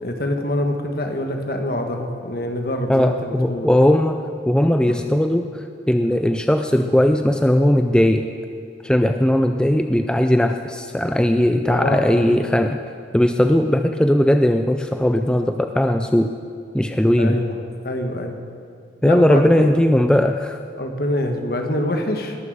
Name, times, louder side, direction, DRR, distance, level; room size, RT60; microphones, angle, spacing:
voice 1, 0.0-3.7 4.9-5.0 11.7-12.3 17.2-17.6 17.8-18.4 19.0-19.7 20.8-22.4, left 1 dB, 55° left, 4 dB, 1.4 m, -25 dB
voice 2, 2.9-5.5 5.9-8.3 8.8-12.8 13.1-16.3 16.7-17.4 19.0-20.6, left 1 dB, 5° left, 6 dB, 0.3 m, -18 dB
20.5 x 7.5 x 6.5 m, 2.3 s
head